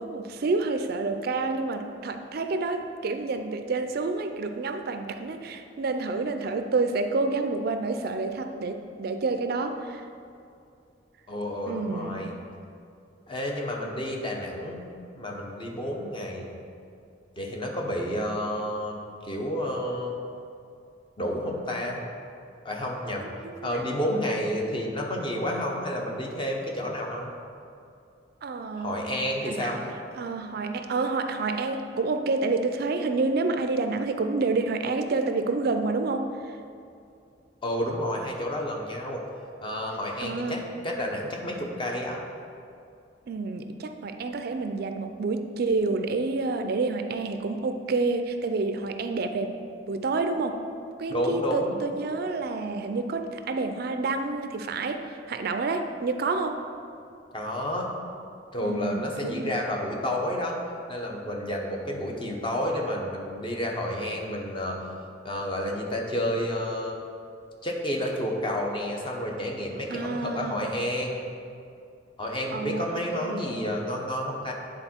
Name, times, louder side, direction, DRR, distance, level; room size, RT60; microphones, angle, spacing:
voice 1, 0.0-10.0 11.7-12.3 23.2-23.7 28.4-29.1 29.4-29.8 30.2-36.6 40.2-40.6 43.3-49.6 49.9-50.6 51.0-55.0 55.3-56.6 58.6-59.6 69.9-70.6 72.5-73.5, right 3 dB, 55° right, 7 dB, 0.4 m, -29 dB
voice 2, 11.3-12.3 13.3-14.9 15.2-16.5 17.4-20.2 21.2-22.0 22.6-23.3 23.6-27.3 28.8-29.8 37.6-39.2 39.6-42.2 51.1-51.8 57.3-57.9 58.5-60.6 60.9-64.8 65.2-67.0 67.6-71.2 72.2-74.5, left 1 dB, 30° left, 0 dB, 0.8 m, -30 dB
9.8 x 3.7 x 4.4 m, 2.5 s
head